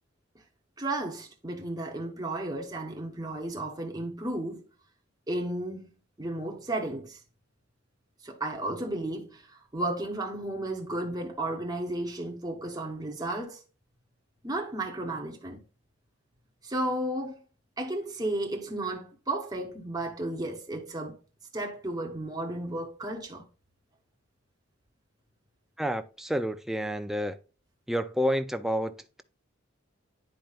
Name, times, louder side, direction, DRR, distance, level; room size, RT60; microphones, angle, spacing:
voice 1, 0.8-4.6 5.3-5.9 6.2-7.2 8.2-13.6 14.4-15.6 16.6-17.4 17.8-21.2 21.5-23.4, right 1 dB, 20° right, 0.9 m, -33 dB
voice 2, 25.8-27.4 27.9-29.2, equal, ahead, 0.4 m, -29 dB
10.0 x 4.5 x 2.4 m
head